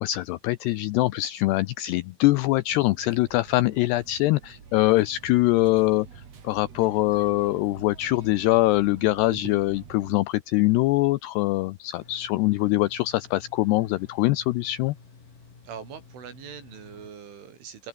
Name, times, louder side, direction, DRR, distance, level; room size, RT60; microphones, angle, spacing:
voice 1, 0.0-6.1 6.4-15.0, left 18 dB, 85° left, 2.3 m, -23 dB
sound 1, 2.7-10.2, right 6 dB, 40° right, 3.2 m, -46 dB
sound 2, 12.0-17.1, left 4 dB, 45° left, 7.1 m, -51 dB
voice 2, 15.6-17.9, right 7 dB, 75° right, 6.6 m, -42 dB
omnidirectional pair, 5.6 m